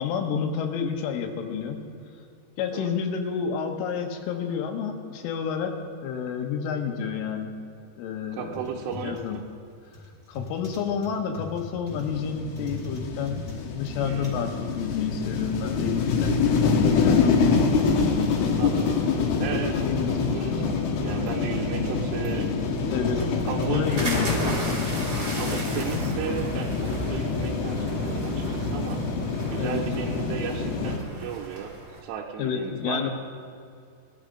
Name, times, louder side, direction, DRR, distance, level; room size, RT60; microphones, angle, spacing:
voice 1, 0.0-1.9 2.6-7.6 8.0-8.5 9.0-9.4 10.3-13.4 13.7-17.6 19.8-20.7 22.8-23.4 23.7-24.9 29.6-29.8 32.4-33.1, left 7 dB, 90° left, 3 dB, 3.8 m, -30 dB
sound 1, 8.3-18.5 18.7-20.4 20.7-21.4 21.8-24.8, equal, 10° left, 3.3 m, -46 dB
voice 2, 8.3-9.4 14.0-14.5 18.6-19.0 19.4-19.9 20.2-22.5 23.5-24.1 25.4-29.0 29.5-31.7 32.0-33.1, right 8 dB, 90° right, -2 dB, 3.4 m, -35 dB
sound 2, 11.9-31.0, left 4 dB, 70° left, 3.1 m, -26 dB
sound 3, 22.1-32.0, right 1 dB, 30° right, 2.2 m, -36 dB
20.0 x 12.0 x 5.1 m, 2.5 s
omnidirectional pair, 5.6 m